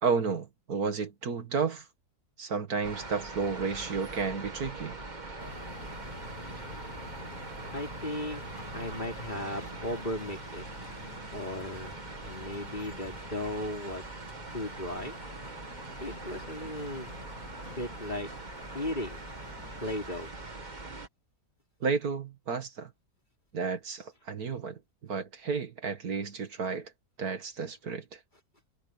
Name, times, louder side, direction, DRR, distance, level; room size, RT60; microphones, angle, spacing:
voice 1, 0.0-1.9 2.4-5.0 21.8-22.9 23.5-26.9 27.2-28.2, right 5 dB, 70° right, 2.2 m, -32 dB
sound 1, 2.8-21.1, right 3 dB, 30° right, 1.9 m, -42 dB
sound 2, 5.4-19.9, left 6 dB, 65° left, 2.4 m, -49 dB
voice 2, 7.7-8.4 8.7-10.7 11.0-12.0 12.2-14.1 14.5-15.2 16.0-17.2 17.7-18.3 18.7-19.2 19.8-20.3, left 1 dB, 30° left, 4.9 m, -36 dB
omnidirectional pair, 1.7 m